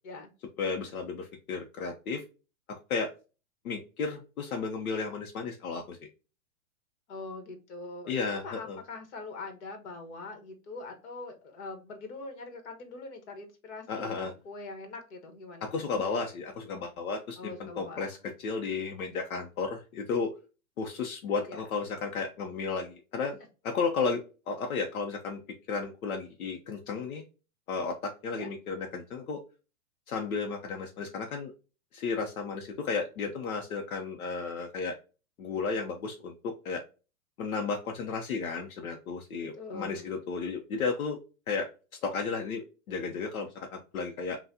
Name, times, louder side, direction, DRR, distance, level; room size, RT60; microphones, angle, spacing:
voice 1, 0.6-2.2 2.9-3.1 3.6-6.0 8.1-8.8 13.9-14.3 15.6-18.2 18.4-20.3 20.8-23.4 23.6-25.4 25.7-27.2 27.7-29.4 30.1-31.5 31.9-34.9 35.4-36.8 37.4-41.2 41.5-41.7 42.0-44.4, left 4 dB, 80° left, 2 dB, 0.9 m, -33 dB
voice 2, 7.1-15.9 17.4-18.1 21.5-21.6 28.3-28.5 39.6-40.1, left 3 dB, 55° left, 5 dB, 1.4 m, -43 dB
5.6 x 2.5 x 2.7 m, 0.33 s
hypercardioid pair, 160°, 43 cm